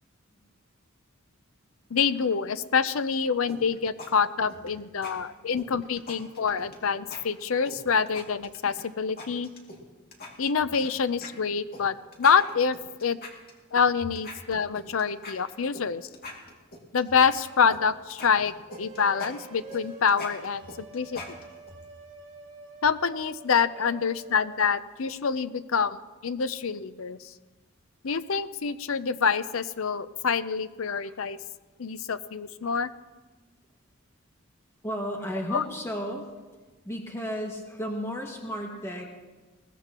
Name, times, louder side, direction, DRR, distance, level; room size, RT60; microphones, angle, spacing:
voice 1, 1.9-9.5 10.4-12.8 13.0-13.2 13.7-16.1 16.9-21.2 22.8-26.0 26.2-27.2 28.0-31.4 31.8-32.9 35.5-35.6, left 6 dB, 75° left, 13 dB, 0.6 m, -26 dB
sound 1, 3.5-4.1 4.4-4.7 5.0-5.1 5.6-6.8 7.1-7.2 7.6-8.8 9.2-9.8 10.1-10.9 11.2-11.3 11.7-11.8 12.1-13.8 14.1-15.8 16.1-17.8 18.1-21.7, left 2 dB, 45° left, 2.5 m, -42 dB
sound 2, 18.7-24.8, right 3 dB, 35° right, 2.1 m, -47 dB
voice 2, 34.8-36.3 36.8-39.1, equal, 15° left, 0 dB, 1.9 m, -34 dB
21.0 x 18.0 x 3.0 m, 1.2 s
head